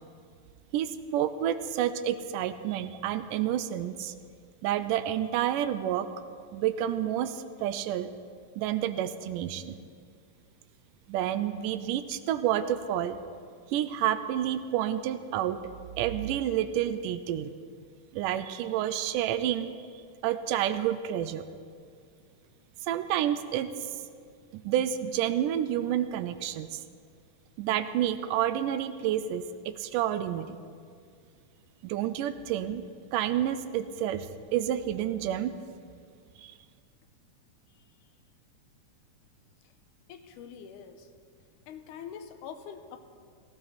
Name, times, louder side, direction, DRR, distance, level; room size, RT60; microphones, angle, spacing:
voice 1, 0.7-4.1 4.6-6.1 6.5-8.1 8.6-9.8 11.1-13.2 13.7-15.6 16.0-17.5 18.1-19.7 20.2-21.4 22.8-23.7 24.5-26.8 27.6-30.6 31.8-32.8 33.1-35.5 36.4-36.5, right 11 dB, 85° right, 12 dB, 2.1 m, -29 dB
voice 2, 37.7-38.2 39.6-39.7 40.1-41.1 41.7-43.0, left 7 dB, 80° left, 8 dB, 2.1 m, -45 dB
17.0 x 15.0 x 4.2 m, 2.2 s
omnidirectional pair, 3.8 m